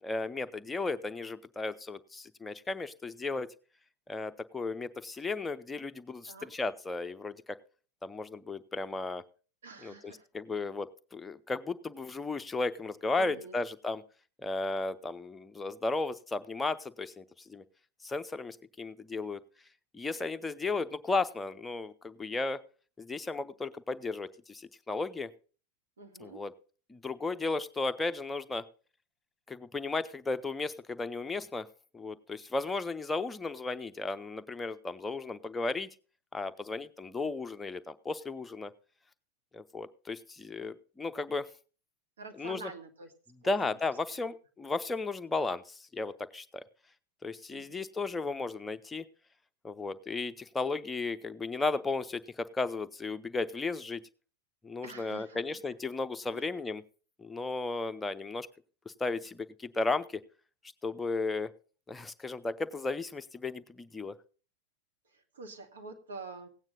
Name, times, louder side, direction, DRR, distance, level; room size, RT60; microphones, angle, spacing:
voice 1, 0.0-3.5 4.1-7.6 8.0-9.2 9.8-14.0 14.4-17.6 18.0-19.4 19.9-22.6 23.0-25.3 26.2-26.5 26.9-28.6 29.5-31.7 31.9-35.9 36.3-38.7 39.5-41.5 42.4-42.6 43.4-46.5 47.2-49.1 49.6-54.0 54.6-56.8 57.2-58.5 58.9-60.2 60.8-61.5 61.9-64.1, left 3 dB, 10° left, 10 dB, 0.6 m, -34 dB
voice 2, 9.6-10.3 13.1-13.6 26.0-26.5 42.2-43.1 43.4-43.8 44.1-44.2 47.5-47.9 54.8-55.6 56.3-56.5 65.0-66.5, right 4 dB, 65° right, 4 dB, 1.7 m, -47 dB
16.5 x 9.0 x 3.8 m, 0.38 s
figure-of-eight pair, 90°, 0 cm